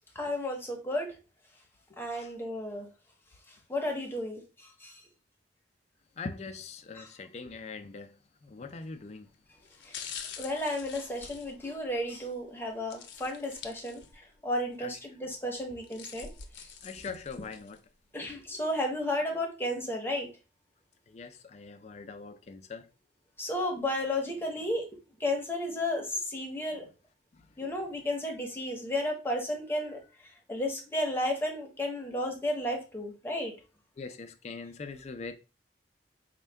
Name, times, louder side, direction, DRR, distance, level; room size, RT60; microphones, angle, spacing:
voice 1, 0.1-1.2 2.0-2.9 3.7-5.0 7.0-7.1 9.8-10.0 10.4-16.7 18.1-20.3 23.4-24.8 25.2-26.9 27.6-30.0 30.5-33.5, left 1 dB, 10° left, 0.7 m, -33 dB
voice 2, 1.9-2.3 6.2-8.2 8.4-9.3 14.8-14.9 16.8-17.8 21.1-22.9 27.3-27.5 34.0-35.3, left 4 dB, 35° left, 0.3 m, -42 dB
sound 1, 8.7-9.0 9.7-12.2 12.9-14.4 14.7-14.8 15.6-17.8 18.3-18.4, left 7 dB, 90° left, 0.6 m, -45 dB
4.3 x 2.2 x 3.3 m
head